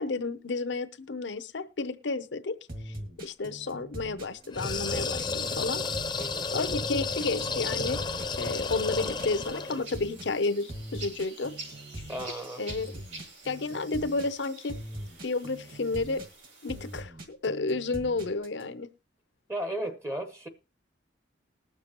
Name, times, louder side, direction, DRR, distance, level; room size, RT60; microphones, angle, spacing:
voice 1, 0.0-2.6 2.8-5.8 6.5-8.0 8.4-11.5 12.6-13.0 13.4-14.7 15.2-16.2 16.6-18.9, left 3 dB, 65° left, 12 dB, 0.7 m, -31 dB
sound 1, 2.7-18.6, right 1 dB, 50° right, 1.9 m, -42 dB
sound 2, 4.5-9.9, left 4 dB, 25° left, 0.6 m, -32 dB
sound 3, 5.4-17.0, right 3 dB, 75° right, 4.2 m, -49 dB
voice 2, 6.2-6.5 12.1-12.6 19.5-20.5, right 1 dB, 15° right, 8 dB, 0.8 m, -35 dB
20.0 x 6.8 x 3.0 m, 0.33 s
head